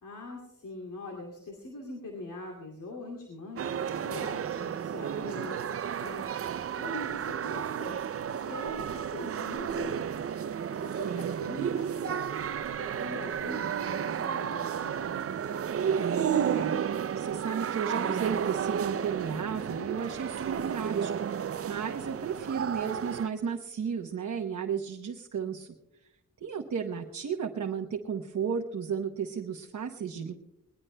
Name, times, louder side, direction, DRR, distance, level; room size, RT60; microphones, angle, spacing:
voice 1, 0.0-6.5 6.8-8.0 8.4-10.2 10.7-12.4 12.7-15.3, left 2 dB, 85° left, -1 dB, 2.5 m, -43 dB
sound 1, 3.6-23.3, right 8 dB, 50° right, 0.4 m, -32 dB
voice 2, 11.0-11.4 16.0-25.7 26.4-30.3, right 6 dB, 65° right, 3 dB, 0.9 m, -34 dB
21.0 x 19.5 x 2.2 m, 0.92 s
wide cardioid pair, 160°, 31 cm